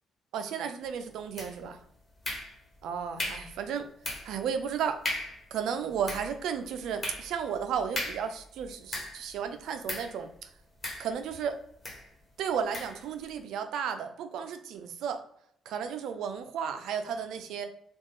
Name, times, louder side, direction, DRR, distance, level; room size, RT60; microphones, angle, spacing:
voice 1, 0.3-1.8 2.8-3.9 4.2-5.0 5.5-10.3 11.0-11.5 12.4-15.2 15.7-17.7, right 7 dB, 80° right, 7 dB, 0.5 m, -33 dB
sound 1, 1.4-1.8 2.2-2.8 3.2-3.6 4.0-4.4 4.7-4.8 5.0-5.5 5.9-9.3 9.9-10.2 10.8-11.4 11.8-12.1 12.7-13.0, left 1 dB, 25° left, 1.3 m, -37 dB
3.5 x 2.4 x 3.1 m, 0.69 s
cardioid pair, 90°, 0 cm